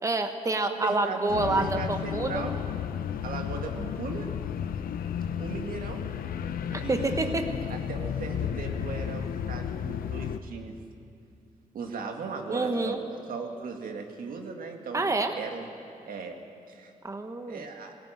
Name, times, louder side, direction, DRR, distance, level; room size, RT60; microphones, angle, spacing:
voice 1, 0.0-2.4 6.7-7.5 12.5-13.0 14.9-15.3 17.0-17.6, right 2 dB, 20° right, 6 dB, 1.2 m, -28 dB
voice 2, 0.7-2.6 3.2-4.3 5.4-6.1 6.8-7.4 7.7-10.7 11.7-13.0 13.3-15.1 15.4-15.7 16.1-16.4 16.7-16.9 17.5-17.9, right 5 dB, 75° right, 3 dB, 2.1 m, -37 dB
sound 1, 1.3-10.4, left 8 dB, 80° left, 0.7 m, -33 dB
18.0 x 17.0 x 9.1 m, 2.5 s
cardioid pair, 80°, 15 cm